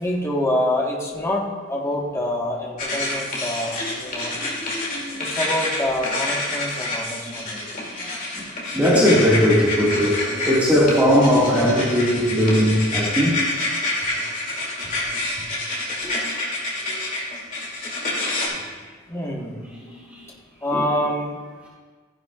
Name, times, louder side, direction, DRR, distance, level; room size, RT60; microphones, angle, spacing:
voice 1, 0.0-4.4 5.2-7.7 19.1-19.7 20.6-21.4, left 1 dB, 15° left, -2 dB, 1.3 m, -26 dB
sound 1, 2.8-18.5, left 2 dB, 45° left, 2.4 m, -28 dB
voice 2, 4.3-5.4 7.3-8.4 8.7-13.4 14.1-14.3 16.0-16.3 16.8-17.1 18.5-18.6 19.7-20.3 20.7-20.9, equal, 10° right, -8 dB, 1.7 m, -21 dB
15.0 x 10.5 x 2.3 m, 1.5 s
head